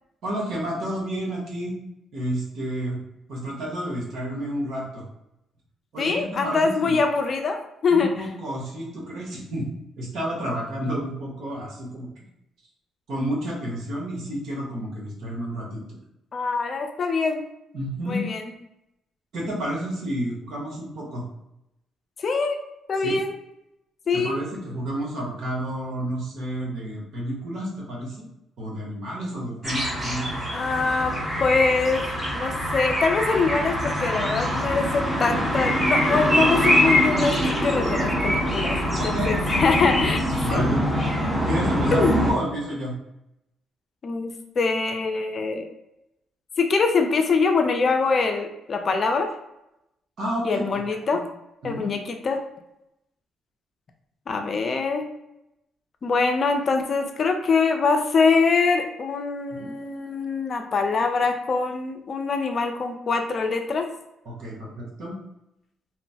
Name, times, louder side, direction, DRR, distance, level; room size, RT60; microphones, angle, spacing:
voice 1, 0.2-1.7 2.1-3.0 3.3-5.0 5.9-7.0 7.9-9.7 10.0-12.1 13.1-15.8 17.7-18.3 19.3-21.2 23.0-23.2 24.1-28.2 28.6-30.4 39.0-39.9 40.4-40.8 41.4-42.9 50.2-50.8 51.1-51.2 51.6-51.9 59.5-59.8 64.2-65.1, equal, 75° right, -3 dB, 1.0 m, -30 dB
voice 2, 6.0-8.3 16.3-17.4 18.1-18.5 22.2-22.6 22.9-23.4 24.1-24.4 30.5-31.1 31.4-32.0 32.3-40.2 40.5-40.6 41.9-42.1 44.0-45.7 46.6-49.3 50.4-51.2 51.6-52.4 54.3-55.0 56.0-63.9, left 4 dB, 45° left, 4 dB, 0.4 m, -24 dB
sound 1, 29.6-42.3, equal, 15° right, 0.9 m, -24 dB
3.0 x 2.0 x 2.7 m, 0.85 s
cardioid pair, 90°, 0 cm